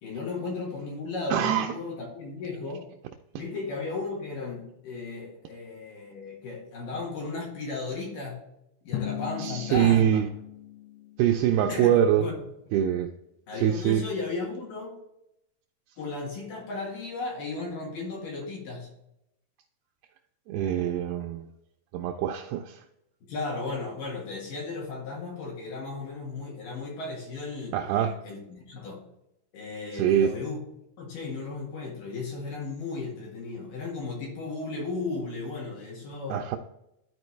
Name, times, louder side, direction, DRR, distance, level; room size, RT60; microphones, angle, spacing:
voice 1, 0.0-2.8 3.3-8.4 8.8-10.2 11.7-12.3 13.5-14.9 16.0-18.9 23.3-27.7 28.2-29.0 29.5-30.6 31.0-36.4, left 3 dB, 60° left, 2.9 m, -35 dB
voice 2, 1.3-1.7 9.4-10.3 11.2-12.3 12.7-13.1 13.6-14.0 20.5-21.5 21.9-22.8 27.7-28.1 29.9-30.3 36.3-36.6, right 10 dB, 85° right, 2.2 m, -24 dB
Drum, 8.9-11.6, left 11 dB, 75° left, 2.7 m, -37 dB
12.5 x 4.4 x 3.2 m
omnidirectional pair, 5.0 m